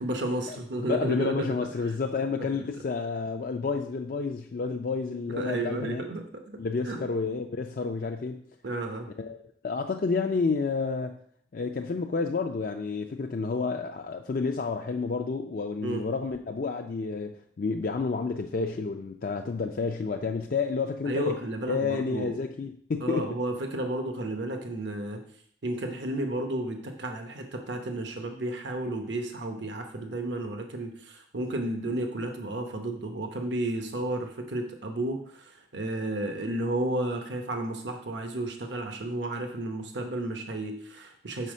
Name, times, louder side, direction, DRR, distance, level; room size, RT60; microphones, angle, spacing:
voice 1, 0.0-1.6 5.4-6.6 6.8-7.0 8.6-9.1 15.8-16.0 21.1-22.3 23.0-25.2 25.6-41.5, right 1 dB, 80° right, 4 dB, 0.9 m, -32 dB
voice 2, 0.9-6.1 6.6-8.4 9.2-9.4 9.6-11.2 11.5-21.4 21.7-23.3, left 4 dB, 50° left, 3 dB, 0.4 m, -30 dB
5.5 x 4.8 x 6.2 m, 0.62 s
head